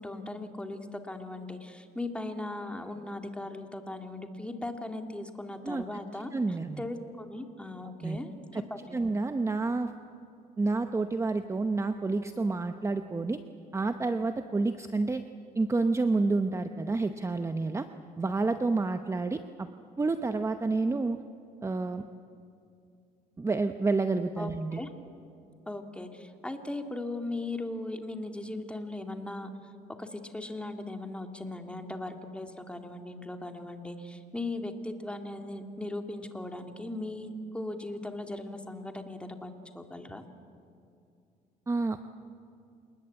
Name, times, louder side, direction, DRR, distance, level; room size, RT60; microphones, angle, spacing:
voice 1, 0.0-6.3 6.8-9.0 24.4-24.9 25.7-29.5 30.0-40.2, left 2 dB, 5° left, 5 dB, 2.2 m, -38 dB
voice 2, 6.3-6.8 8.0-8.2 8.5-8.6 8.9-9.9 10.6-13.4 13.7-15.3 15.5-17.9 18.2-19.7 20.0-21.2 21.6-22.1 23.4-24.8 41.7-42.1, right 3 dB, 15° right, 8 dB, 0.9 m, -29 dB
28.0 x 20.0 x 8.6 m, 2.5 s
cardioid pair, 110°, 17 cm